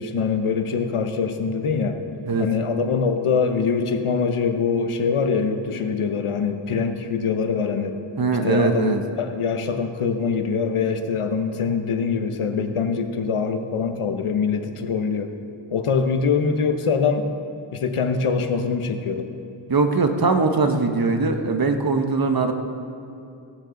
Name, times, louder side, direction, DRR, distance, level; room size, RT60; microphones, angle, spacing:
voice 1, 0.0-2.0 2.4-8.0 8.4-15.3 15.7-17.3 17.7-19.3, left 5 dB, 85° left, 7 dB, 0.9 m, -23 dB
voice 2, 8.2-9.0 19.7-22.5, right 3 dB, 45° right, 6 dB, 1.0 m, -21 dB
16.0 x 9.2 x 3.9 m, 2.7 s
wide cardioid pair, 80°, 49 cm